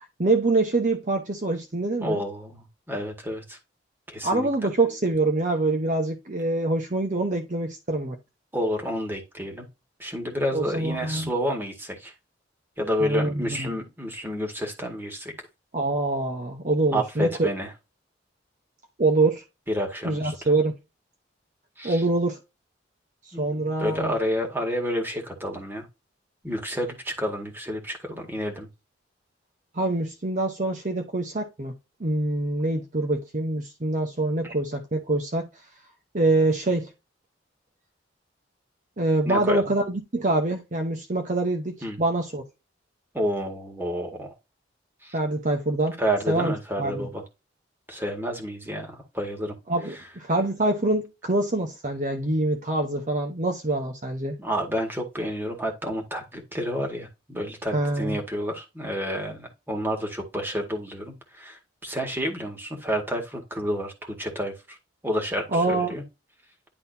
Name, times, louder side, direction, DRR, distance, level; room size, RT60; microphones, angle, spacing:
voice 1, 0.2-2.2 4.2-8.2 10.5-11.3 13.0-13.7 15.7-17.5 19.0-19.4 20.0-20.8 21.8-22.4 23.3-24.1 29.7-31.7 32.0-35.5 36.1-36.9 39.0-42.4 45.1-46.0 46.3-47.1 49.7-54.4 57.7-58.2 65.5-66.0, right 2 dB, 45° right, 1.0 m, -25 dB
voice 2, 2.0-3.6 4.1-4.5 8.5-9.7 10.0-12.1 12.8-15.3 16.9-17.7 19.7-20.3 21.8-22.0 23.3-25.9 26.4-28.7 34.4-34.5 39.2-39.6 41.8-42.0 43.1-44.3 45.0-45.2 46.0-47.2 47.9-49.6 54.4-64.8 65.0-66.0, equal, 10° right, 2.0 m, -30 dB
11.0 x 3.9 x 2.7 m
head